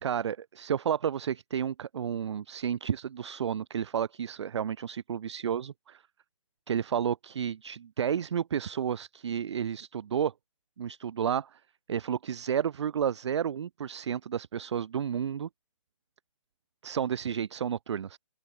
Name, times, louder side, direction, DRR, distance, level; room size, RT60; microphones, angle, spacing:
voice 1, 0.0-6.0 6.7-10.3 10.8-11.6 11.9-15.5 16.8-18.2, right 8 dB, 60° right, 0.4 m, -31 dB
open air
hypercardioid pair, 175°, 17 cm